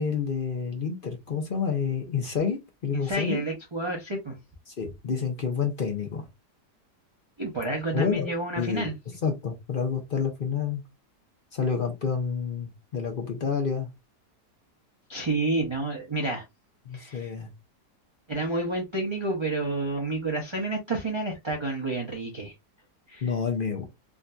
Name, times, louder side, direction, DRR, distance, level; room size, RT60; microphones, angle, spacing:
voice 1, 0.0-3.4 4.7-6.2 7.9-8.3 8.6-8.9 9.2-10.8 11.5-13.9 16.9-17.5 23.2-23.9, left 6 dB, 50° left, 0.7 m, -29 dB
voice 2, 2.9-4.4 7.4-8.9 15.1-16.4 16.9-17.3 18.3-22.5 23.1-23.3, right 2 dB, 25° right, 0.6 m, -30 dB
3.7 x 2.6 x 2.2 m
omnidirectional pair, 1.7 m